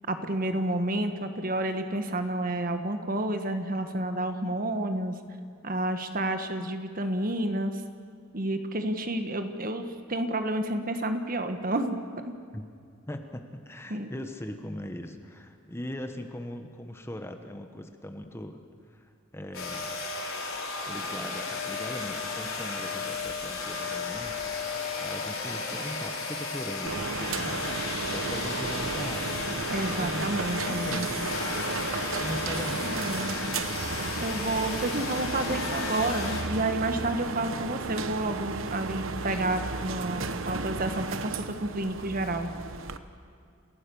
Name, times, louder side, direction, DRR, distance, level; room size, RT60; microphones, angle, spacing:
voice 1, 0.1-5.1 5.6-7.8 8.3-12.0 12.2-12.3 13.9-14.3 29.7-31.1 32.8-33.4 34.2-42.5, right 1 dB, 45° right, 7 dB, 1.4 m, -30 dB
voice 2, 13.1-18.6 18.9-20.0 20.9-31.3 32.2-33.1, left 1 dB, 10° left, 6 dB, 1.2 m, -40 dB
sound 1, 19.5-36.4, left 4 dB, 85° left, 4.3 m, -34 dB
sound 2, 26.9-43.0, right 4 dB, 75° right, 1.0 m, -34 dB
28.5 x 16.0 x 7.1 m, 2.3 s
head